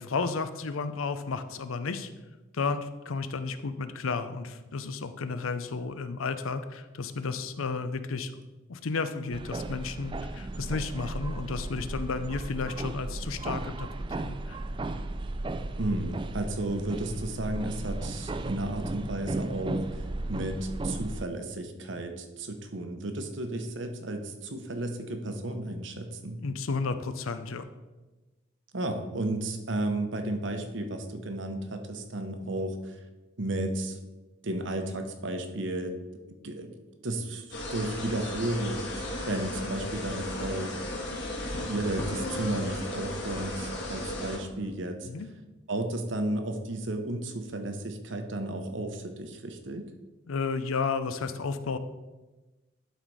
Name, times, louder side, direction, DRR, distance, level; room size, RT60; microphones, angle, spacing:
voice 1, 0.0-2.1 2.5-8.4 8.7-14.6 26.4-27.7 45.0-45.3 50.3-51.8, left 4 dB, 90° left, 11 dB, 0.6 m, -32 dB
sound 1, 9.3-21.3, right 2 dB, 25° right, 0.3 m, -35 dB
voice 2, 15.8-19.8 20.3-26.4 28.7-33.0 33.4-34.0 34.4-35.9 36.3-36.7 37.0-37.5 37.7-40.7 41.7-45.1 45.7-49.8, right 1 dB, 65° right, 6 dB, 0.9 m, -33 dB
sound 2, 37.5-44.4, left 1 dB, 55° left, 1.9 m, -35 dB
11.5 x 4.1 x 4.7 m, 1.1 s
head